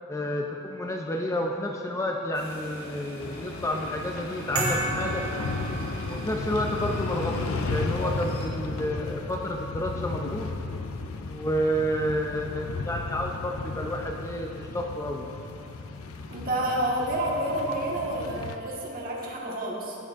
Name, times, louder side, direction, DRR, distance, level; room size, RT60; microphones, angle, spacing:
voice 1, 0.1-5.3 6.0-10.5 11.3-15.3, equal, 15° left, 1 dB, 0.4 m, -30 dB
sound 1, 2.3-8.5, equal, 50° left, 1.6 m, -43 dB
sound 2, 3.2-18.6, left 3 dB, 80° left, 0.5 m, -34 dB
sound 3, 4.5-6.5, right 2 dB, 80° right, 1.9 m, -31 dB
voice 2, 16.3-20.0, right 1 dB, 45° right, -3 dB, 1.4 m, -29 dB
15.5 x 6.3 x 2.4 m, 2.8 s
head